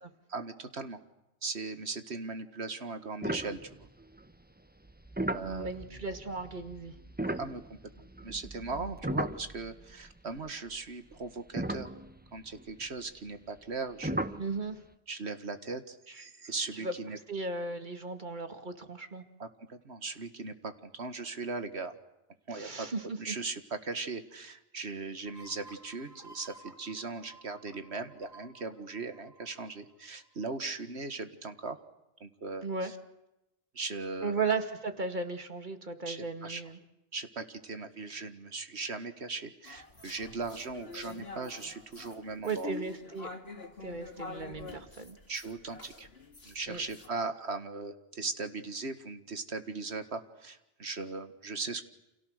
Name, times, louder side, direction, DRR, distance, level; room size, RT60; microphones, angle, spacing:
voice 1, 0.3-1.0 1.4-3.9 5.3-5.7 7.2-11.9 12.3-14.4 15.1-17.2 19.4-22.0 22.5-31.8 32.2-32.9 33.7-34.4 36.1-36.6 37.1-42.7 45.3-46.1 46.4-51.8, right 3 dB, 85° right, 9 dB, 2.1 m, -39 dB
sound 1, 3.2-4.2 4.8-10.1 10.4-10.5 11.1-11.2 11.6-12.6 14.0-14.5, right 1 dB, 10° right, 0.9 m, -36 dB
voice 2, 5.4-6.9 14.4-14.8 16.1-16.2 16.7-17.0 17.3-19.2 22.5-23.4 32.6-32.9 34.2-36.8 42.4-43.3 43.8-45.2 46.7-46.8, right 4 dB, 45° right, 7 dB, 2.3 m, -36 dB
sound 2, 25.3-30.7, right 2 dB, 15° left, 3.0 m, -55 dB
sound 3, 39.7-47.1, left 4 dB, 70° left, 2.4 m, -46 dB
30.0 x 28.0 x 6.6 m, 0.91 s
omnidirectional pair, 1.1 m